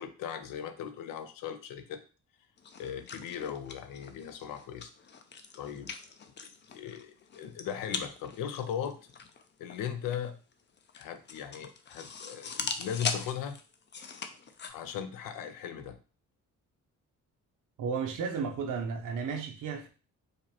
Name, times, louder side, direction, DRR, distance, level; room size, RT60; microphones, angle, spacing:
voice 1, 0.0-2.0 2.8-4.9 5.5-5.9 6.7-9.0 9.6-10.4 10.9-13.6 14.7-16.0, left 8 dB, 85° left, 0.6 m, -38 dB
sound 1, 2.6-14.7, left 5 dB, 35° left, 0.5 m, -41 dB
voice 2, 17.8-19.9, right 5 dB, 75° right, 0.8 m, -33 dB
5.1 x 2.0 x 2.8 m
cardioid pair, 95°, 32 cm